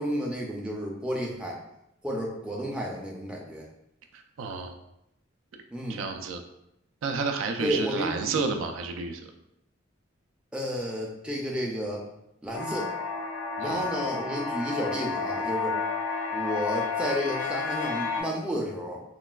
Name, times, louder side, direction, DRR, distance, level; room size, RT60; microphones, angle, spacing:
voice 1, 0.0-1.6 2.0-3.7 5.7-6.0 7.6-8.5 10.5-12.1 12.4-12.9 13.6-15.8 16.3-19.0, equal, 5° right, -2 dB, 0.4 m, -31 dB
voice 2, 4.1-4.7 5.9-6.4 7.0-9.3 13.6-13.8, right 4 dB, 85° right, 5 dB, 0.3 m, -31 dB
sound 1, 12.5-18.2, left 4 dB, 85° left, 0.6 m, -31 dB
3.9 x 2.2 x 2.2 m, 0.83 s
head